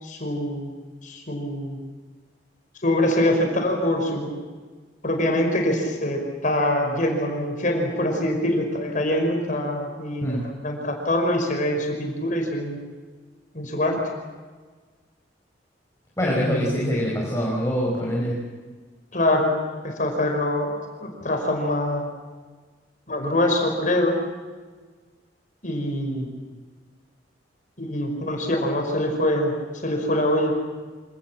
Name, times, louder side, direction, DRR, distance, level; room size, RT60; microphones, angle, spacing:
voice 1, 0.0-0.8 1.0-1.8 2.8-4.3 5.0-10.4 10.6-12.8 13.5-14.0 19.1-19.5 19.8-20.7 21.0-22.1 23.1-24.2 25.6-26.3 27.8-29.5 29.8-30.5, left 1 dB, 45° left, 2 dB, 5.3 m, -24 dB
voice 2, 16.2-18.4, equal, 15° left, -4 dB, 5.0 m, -24 dB
27.0 x 19.5 x 7.5 m, 1.4 s
head